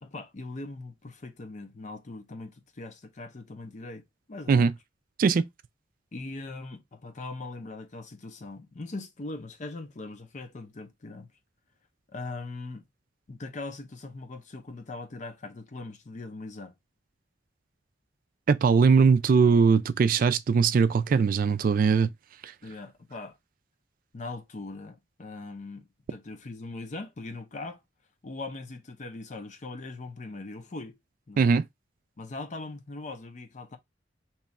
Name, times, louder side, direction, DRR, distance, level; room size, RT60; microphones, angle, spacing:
voice 1, 0.0-4.0 4.3-4.7 6.1-11.3 12.1-12.9 13.3-16.7 22.6-23.4 24.1-27.8 28.2-30.9 31.3-31.5 32.2-33.8, left 3 dB, 40° left, 0.6 m, -40 dB
voice 2, 18.5-22.1 22.4-22.5 31.4-31.6, right 5 dB, 50° right, 0.3 m, -21 dB
3.0 x 2.4 x 4.0 m
head